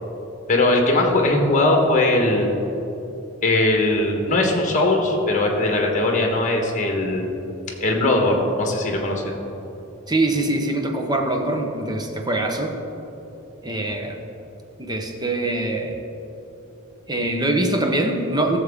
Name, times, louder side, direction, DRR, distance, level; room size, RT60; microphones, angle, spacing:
voice 1, 0.5-2.6 3.4-7.3 7.8-9.2, left 2 dB, 35° left, 1 dB, 1.3 m, -20 dB
voice 2, 10.1-12.7 13.6-14.2 14.8-16.0 17.1-18.6, right 2 dB, 20° right, 3 dB, 0.8 m, -23 dB
15.0 x 7.1 x 3.6 m, 3.0 s
head